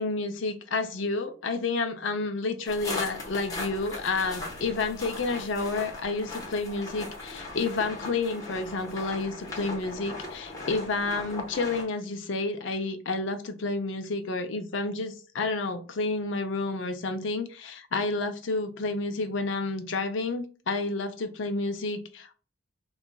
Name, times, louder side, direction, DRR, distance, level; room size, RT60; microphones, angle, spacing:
voice 1, 0.0-22.4, left 3 dB, 65° left, 0.5 m, -30 dB
sound 1, 2.6-11.8, left 2 dB, 15° left, 1.0 m, -38 dB
3.8 x 2.3 x 2.2 m
head